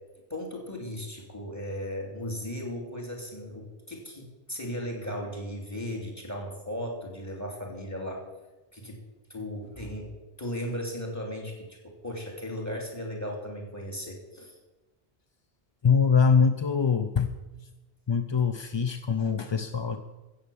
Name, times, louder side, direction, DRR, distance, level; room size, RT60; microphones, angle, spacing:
voice 1, 0.3-8.2 8.7-9.0 9.3-14.6, equal, 15° left, 1 dB, 2.8 m, -36 dB
voice 2, 15.8-17.3 18.1-20.0, left 6 dB, 35° left, 8 dB, 0.4 m, -23 dB
14.5 x 7.9 x 7.0 m, 1.1 s
omnidirectional pair, 1.1 m